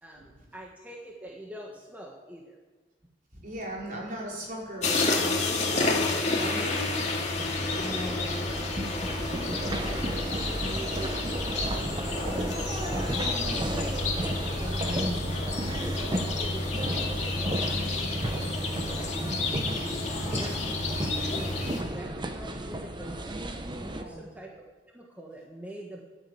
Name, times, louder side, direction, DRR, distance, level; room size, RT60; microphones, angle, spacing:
voice 1, 0.0-2.6 6.4-6.7 7.8-12.7 13.5-14.2 14.5-15.1 15.8-18.3 19.2-23.4 23.8-26.0, right 1 dB, 10° right, -2 dB, 1.6 m, -44 dB
voice 2, 3.4-5.4 5.7-6.1 6.4-6.9 17.6-17.7 23.7-24.2, right 1 dB, 45° right, -3 dB, 5.0 m, -37 dB
sound 1, 4.8-21.8, left 3 dB, 40° left, 2.2 m, -30 dB
sound 2, 7.3-24.0, right 1 dB, 25° right, 0.9 m, -34 dB
12.0 x 11.0 x 8.6 m, 1.3 s
head